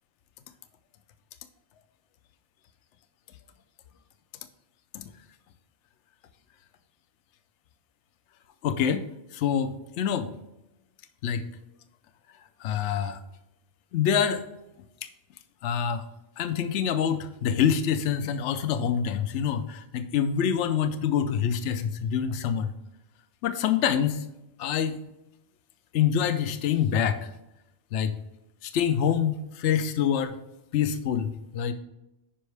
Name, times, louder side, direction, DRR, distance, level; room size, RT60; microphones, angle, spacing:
voice 1, 8.6-9.0 9.3-10.3 11.2-11.4 12.6-13.2 13.9-14.4 15.0-15.1 15.6-16.1 16.4-22.7 23.4-24.2 24.6-25.0 25.9-27.3 27.9-28.2 28.6-30.3 30.7-31.7, left 8 dB, 80° left, 10 dB, 0.9 m, -26 dB
10.0 x 5.3 x 3.3 m, 0.92 s
omnidirectional pair, 1.2 m